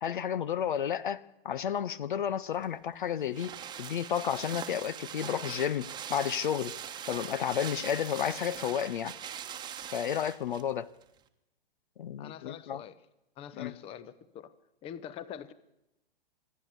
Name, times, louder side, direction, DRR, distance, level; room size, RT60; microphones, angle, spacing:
voice 1, 0.0-3.5 3.8-6.7 7.1-9.2 9.9-10.9 12.0-12.8 13.6-13.7, left 9 dB, 55° left, 0.7 m, -32 dB
sound 1, 2.5-10.7 11.0-11.1, right 9 dB, 15° right, 1.2 m, -42 dB
voice 2, 12.2-13.0 13.4-14.5 14.8-15.5, left 9 dB, 20° left, 0.8 m, -44 dB
26.5 x 10.5 x 9.5 m
figure-of-eight pair, 110°, 30 cm